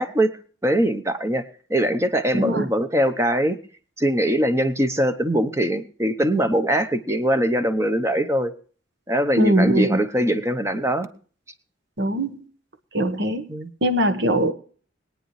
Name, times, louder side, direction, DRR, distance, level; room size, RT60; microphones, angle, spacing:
voice 1, 0.0-1.4 1.7-3.6 4.0-8.5 9.1-11.1 13.5-13.7, equal, 15° right, 8 dB, 0.9 m, -22 dB
voice 2, 2.3-2.7 9.4-10.0 12.0-12.4 12.9-13.4 13.8-14.5, right 1 dB, 60° right, 9 dB, 1.2 m, -21 dB
21.5 x 9.2 x 3.2 m, 0.43 s
head